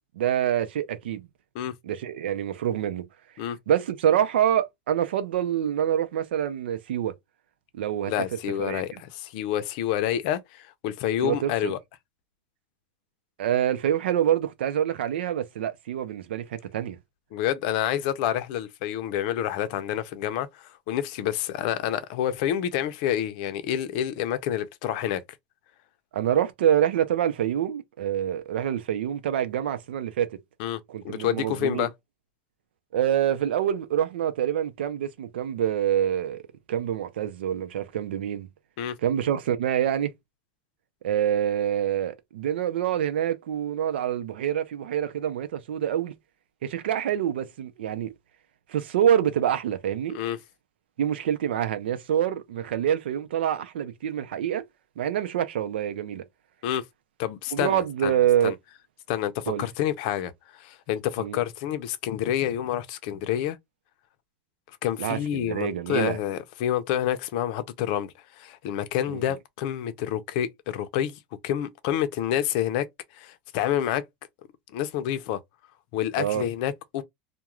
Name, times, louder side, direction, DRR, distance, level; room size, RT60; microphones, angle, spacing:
voice 1, 0.1-1.3 1.8-3.1 3.7-7.1 7.7-8.1 8.6-9.0 11.2-11.7 13.4-17.0 26.1-30.4 30.9-31.9 32.9-36.4 36.7-38.5 39.0-40.1 41.0-46.1 46.6-48.1 48.7-50.2 51.0-54.6 55.0-56.2 57.5-58.5 59.5-59.6 61.2-61.4 65.0-66.2 69.1-69.2 76.2-76.4, right 10 dB, 90° right, 0.5 m, -26 dB
voice 2, 8.1-11.8 17.3-25.2 30.6-30.8 31.0-31.9 38.8-39.0 50.1-50.4 56.6-56.8 57.2-58.1 58.4-58.5 59.1-63.6 64.8-72.9 73.1-74.0 74.7-75.4 75.9-77.0, left 11 dB, 55° left, 0.5 m, -28 dB
2.3 x 2.2 x 2.9 m
supercardioid pair, 145°, 6 cm